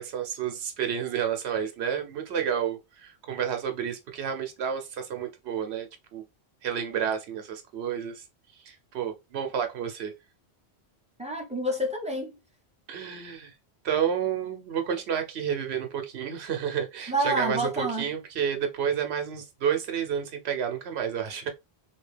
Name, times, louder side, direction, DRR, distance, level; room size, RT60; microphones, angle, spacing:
voice 1, 0.0-6.2 6.6-8.2 8.6-10.1 12.9-13.5 13.8-21.5, right 8 dB, 80° right, 1.0 m, -30 dB
voice 2, 11.2-12.4 17.1-18.0, right 1 dB, 5° right, 0.8 m, -28 dB
2.9 x 2.8 x 3.2 m
omnidirectional pair, 1.1 m